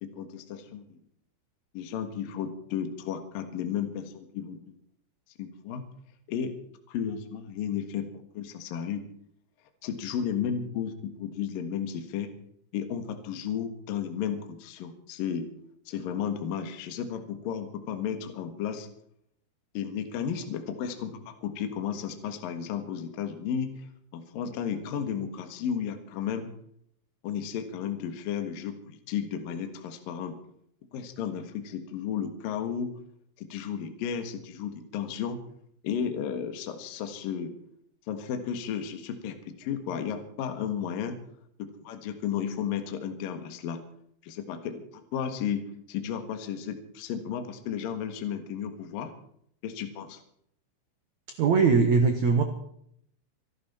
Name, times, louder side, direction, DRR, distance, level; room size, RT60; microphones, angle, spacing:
voice 1, 0.0-1.0 1.7-4.7 5.4-5.8 6.3-6.6 6.9-8.1 8.3-9.0 9.8-12.3 12.7-15.5 15.9-18.9 19.7-23.9 24.1-26.5 27.2-30.4 30.9-32.9 33.4-35.4 35.8-37.5 38.1-41.2 41.6-43.8 44.2-49.1 49.6-50.2, left 8 dB, 60° left, 7 dB, 2.7 m, -33 dB
voice 2, 51.3-52.4, right 5 dB, 85° right, 6 dB, 1.6 m, -21 dB
26.0 x 12.0 x 4.4 m, 0.69 s
omnidirectional pair, 5.5 m